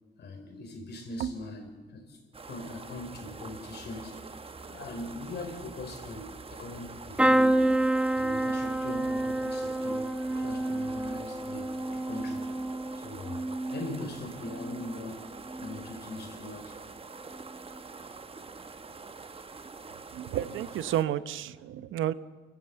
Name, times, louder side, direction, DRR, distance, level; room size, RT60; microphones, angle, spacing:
voice 1, 0.2-2.2 2.5-4.2 4.6-7.7 8.2-12.5 13.0-13.4 13.7-15.3 15.6-16.8, left 2 dB, 60° left, 4 dB, 5.2 m, -41 dB
sound 1, 2.3-21.0, right 4 dB, 30° right, 1.2 m, -45 dB
sound 2, 7.2-15.0 15.4-16.0 17.2-17.4 17.7-17.8, right 1 dB, 5° right, 1.2 m, -29 dB
voice 2, 20.1-22.1, right 11 dB, 80° right, 14 dB, 0.9 m, -31 dB
29.5 x 15.0 x 8.0 m, 1.4 s
cardioid pair, 90°, 20 cm